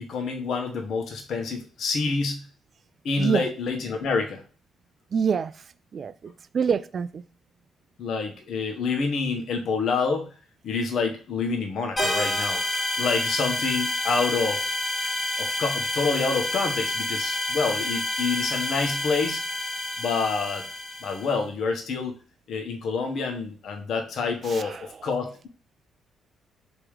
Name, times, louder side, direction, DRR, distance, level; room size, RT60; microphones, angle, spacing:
voice 1, 0.0-2.4 3.0-4.4 8.0-10.3 10.6-12.6 13.0-14.6 15.4-19.4 20.0-20.6 21.0-22.2 22.5-25.5, left 4 dB, 65° left, 1.1 m, -27 dB
voice 2, 5.1-5.5 5.9-7.2 24.5-24.8, right 6 dB, 50° right, 0.4 m, -26 dB
sound 1, 12.0-21.3, left 1 dB, 25° left, 1.4 m, -28 dB
3.6 x 3.0 x 4.8 m
cardioid pair, 90°, 0 cm